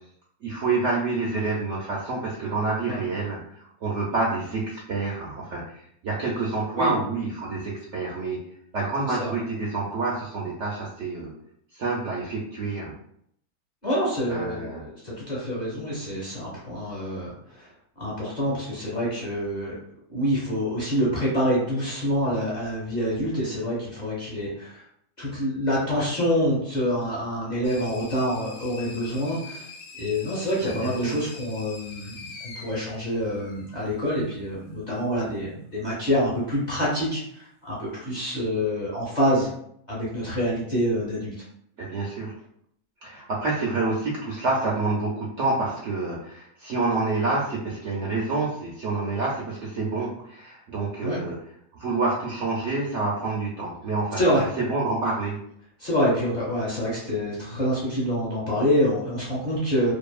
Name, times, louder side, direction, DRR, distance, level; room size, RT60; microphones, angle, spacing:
voice 1, 0.4-8.4 8.7-11.3 11.7-12.9 14.3-14.9 25.9-26.0 30.6-31.2 41.8-42.3 43.0-51.4 51.7-54.2 54.6-55.4, right 3 dB, 65° right, -4 dB, 0.7 m, -28 dB
voice 2, 13.8-17.7 18.0-19.8 20.1-24.8 25.2-29.7 30.0-39.5 39.9-41.3 51.0-51.2 54.2-54.5 55.8-59.9, equal, 35° left, -7 dB, 0.9 m, -26 dB
sound 1, 27.6-34.0, left 4 dB, 75° left, 1.0 m, -44 dB
2.7 x 2.4 x 2.3 m, 0.69 s
omnidirectional pair, 1.6 m